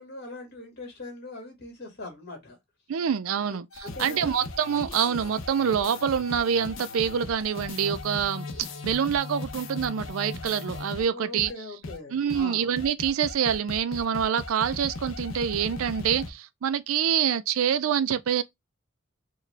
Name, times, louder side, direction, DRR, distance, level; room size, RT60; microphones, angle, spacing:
voice 1, 0.0-2.6 3.5-4.3 11.0-12.7, left 2 dB, 50° left, 1.8 m, -41 dB
voice 2, 2.9-8.5 8.8-11.5 12.1-18.4, right 8 dB, 80° right, 0.4 m, -26 dB
sound 1, 3.7-11.1 11.4-11.5 11.8-12.0 12.3-12.4 12.8-16.3, left 2 dB, 65° left, 0.7 m, -38 dB
4.6 x 2.3 x 3.2 m
head